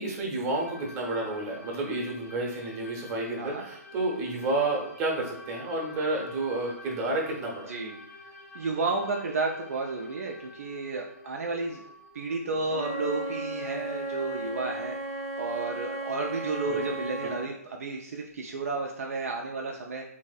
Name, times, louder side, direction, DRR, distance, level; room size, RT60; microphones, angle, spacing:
voice 1, 0.0-7.8 16.7-16.8 17.2-17.3, right 2 dB, 25° right, -2 dB, 0.8 m, -30 dB
sound 1, 0.5-15.7, left 2 dB, 15° left, 0.6 m, -50 dB
voice 2, 8.5-11.8 12.1-15.0 15.4-20.0, right 3 dB, 60° right, 0 dB, 0.4 m, -32 dB
Wind instrument woodwind instrument, 12.6-17.5, right 2 dB, 45° left, 1.0 m, -35 dB
3.2 x 2.6 x 2.3 m, 0.71 s
figure-of-eight pair, 130°, 9 cm